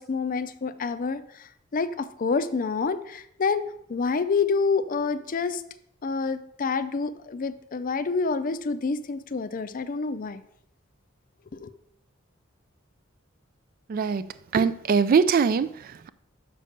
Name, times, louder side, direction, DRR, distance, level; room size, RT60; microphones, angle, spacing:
voice 1, 0.0-3.6 3.9-5.6 6.0-10.4 11.5-11.7, left 4 dB, 45° left, 0.5 m, -28 dB
voice 2, 13.9-14.2 14.5-16.1, right 6 dB, 45° right, 0.3 m, -22 dB
6.6 x 5.4 x 6.4 m
head